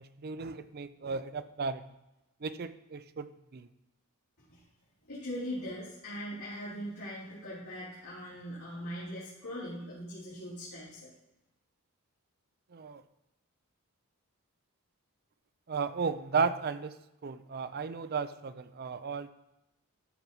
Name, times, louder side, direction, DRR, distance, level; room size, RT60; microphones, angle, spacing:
voice 1, 0.0-1.8 2.4-3.7 12.7-13.0 15.7-17.0 17.2-19.3, right 5 dB, 45° right, 12 dB, 0.5 m, -34 dB
voice 2, 5.0-11.1, equal, 75° left, -11 dB, 3.5 m, -41 dB
13.0 x 4.6 x 5.4 m, 0.91 s
head